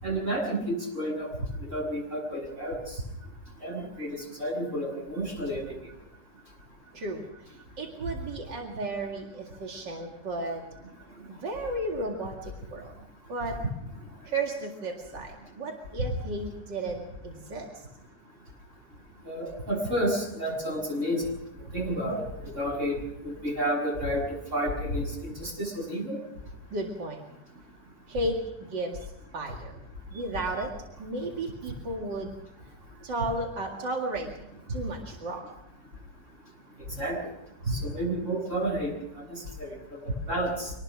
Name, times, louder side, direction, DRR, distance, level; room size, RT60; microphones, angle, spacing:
voice 1, 0.0-1.3 1.7-3.0 3.6-5.7 19.2-21.2 21.7-26.2 37.0-37.2 37.7-38.9 39.2-39.7 40.0-40.7, right 1 dB, 40° right, -1 dB, 7.7 m, -30 dB
voice 2, 6.9-10.6 11.3-12.9 13.3-13.6 14.2-17.8 21.8-22.2 26.7-27.2 28.1-29.0 29.3-29.7 30.1-30.7 31.0-32.4 33.0-34.3 34.7-35.5, right 2 dB, 80° right, 1 dB, 2.9 m, -34 dB
26.0 x 19.0 x 6.3 m, 0.89 s
omnidirectional pair, 1.9 m